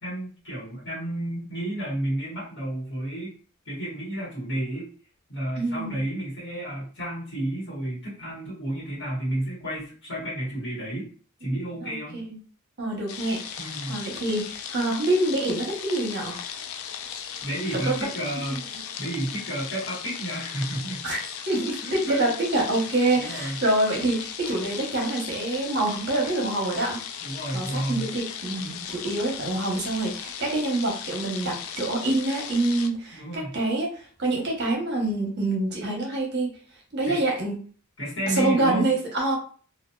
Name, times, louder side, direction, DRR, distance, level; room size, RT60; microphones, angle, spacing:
voice 1, 0.0-3.3 3.6-4.9 5.3-11.1 11.4-12.2 13.6-14.0 17.4-18.6 19.0-21.0 21.8-22.2 23.1-23.6 27.2-28.1 33.1-33.5 37.0-37.2 38.0-38.9, right 1 dB, 60° left, -8 dB, 1.3 m, -31 dB
voice 2, 5.6-6.0 11.5-12.4 12.8-13.6 13.9-16.4 17.7-18.0 18.5-18.6 21.0-21.2 21.5-27.0 27.5-36.5 36.9-37.5 38.3-39.4, right 2 dB, 55° right, 0 dB, 0.9 m, -26 dB
sound 1, 13.1-32.9, left 8 dB, 85° left, 0.4 m, -37 dB
2.7 x 2.4 x 2.3 m, 0.41 s
head